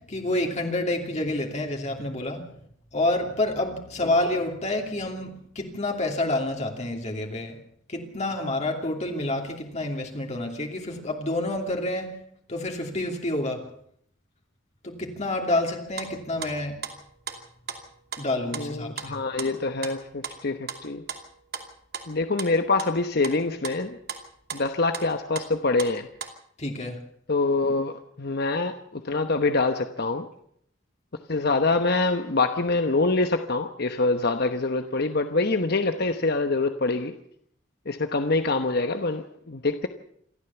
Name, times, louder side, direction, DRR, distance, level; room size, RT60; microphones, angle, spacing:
voice 1, 0.0-2.4 2.9-7.6 7.9-12.1 12.5-13.6 14.8-16.7 18.2-19.2 26.6-27.0, left 1 dB, 35° left, 2 dB, 2.8 m, -28 dB
sound 1, 16.0-16.5 16.8-17.4 17.7-18.2 18.5-20.0 20.2-23.4 23.6-24.2 24.5-25.1 25.4-26.3, right 6 dB, 50° right, 2.6 m, -36 dB
voice 2, 18.5-21.0 22.1-24.0 24.5-26.1 27.3-30.3 31.3-37.2 37.9-39.9, left 3 dB, 50° left, 7 dB, 1.1 m, -25 dB
28.0 x 13.5 x 7.0 m, 0.67 s
head